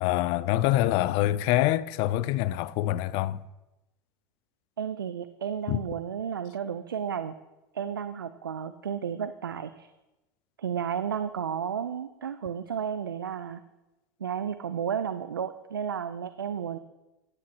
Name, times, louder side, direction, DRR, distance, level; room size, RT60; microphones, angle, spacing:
voice 1, 0.0-3.4 5.7-5.8, left 15 dB, 55° left, 0.5 m, -25 dB
voice 2, 4.8-7.3 7.7-9.9 10.6-13.6 14.2-16.8, right 8 dB, 90° right, 0.4 m, -32 dB
15.0 x 9.9 x 2.9 m
hypercardioid pair, 85°, 11 cm